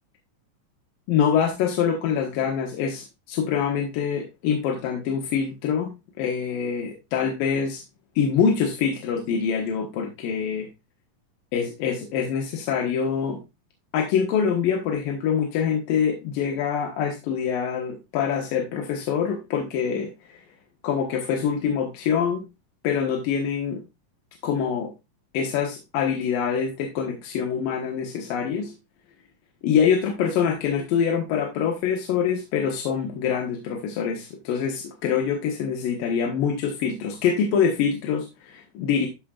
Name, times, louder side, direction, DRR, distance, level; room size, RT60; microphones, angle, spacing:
voice 1, 1.1-7.8 8.2-10.7 11.5-13.4 13.9-20.4 20.8-22.4 22.8-23.8 24.4-24.9 25.3-28.7 29.6-39.1, left 7 dB, 85° left, 2 dB, 3.1 m, -25 dB
13.5 x 5.2 x 2.4 m, 0.24 s
omnidirectional pair, 3.9 m